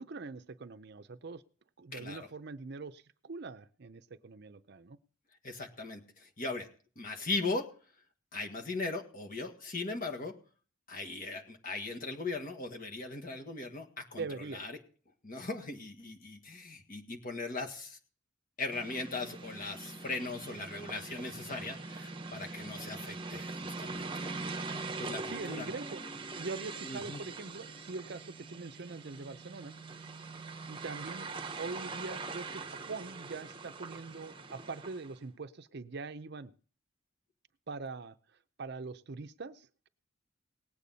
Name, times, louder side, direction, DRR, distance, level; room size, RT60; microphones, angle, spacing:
voice 1, 0.0-1.4 1.8-5.0 14.2-14.6 25.3-26.0 26.3-29.7 30.7-31.3 31.6-36.5 37.7-38.1 38.6-39.9, right 4 dB, 55° right, 12 dB, 0.6 m, -43 dB
voice 2, 1.9-2.3 5.4-6.7 7.0-7.7 8.3-10.4 10.9-14.3 14.5-14.7 15.2-18.0 18.6-24.3 25.0-25.7 26.8-27.2, left 3 dB, 45° left, 3 dB, 1.7 m, -39 dB
sound 1, 18.7-35.2, right 3 dB, 25° right, 0.9 m, -42 dB
19.0 x 8.5 x 4.1 m, 0.41 s
head